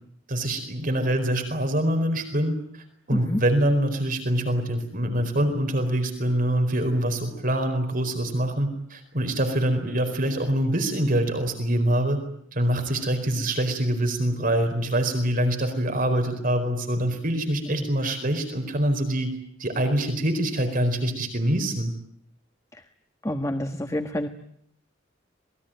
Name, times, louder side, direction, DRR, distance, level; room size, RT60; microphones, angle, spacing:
voice 1, 0.3-2.5 3.1-12.2 12.5-19.3 19.6-21.9, right 1 dB, 45° right, 7 dB, 4.6 m, -25 dB
voice 2, 23.2-24.3, left 1 dB, 15° left, 7 dB, 1.3 m, -28 dB
27.0 x 21.0 x 9.2 m, 0.69 s
head